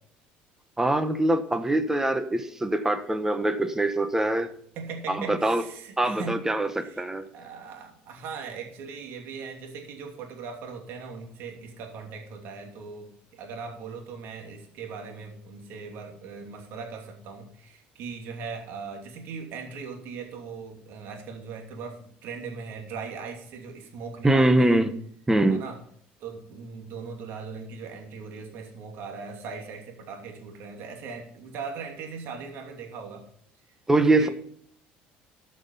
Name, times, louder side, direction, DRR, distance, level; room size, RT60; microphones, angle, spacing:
voice 1, 0.8-4.5 5.1-5.6 6.0-7.3 24.2-25.0 25.3-25.6 33.9-34.3, right 2 dB, 10° right, 1.2 m, -23 dB
voice 2, 4.7-6.4 6.7-7.1 7.3-24.8 25.5-25.8 26.2-33.2 34.0-34.3, right 5 dB, 65° right, 2.8 m, -39 dB
13.0 x 6.1 x 5.6 m
supercardioid pair, 95°, 4 cm